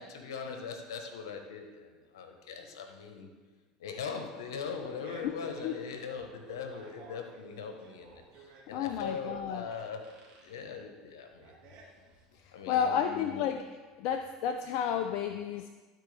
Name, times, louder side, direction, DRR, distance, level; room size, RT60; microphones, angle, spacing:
voice 1, 0.0-3.3 3.8-10.2 10.4-11.5 12.5-13.4, left 5 dB, 80° left, 5 dB, 1.0 m, -41 dB
Fart, 4.8-12.4, right 3 dB, 55° right, 1.8 m, -54 dB
voice 2, 8.7-9.7 12.3-15.7, left 8 dB, 60° left, 6 dB, 0.4 m, -32 dB
12.0 x 4.5 x 3.3 m, 1.3 s
hypercardioid pair, 85°, 2 cm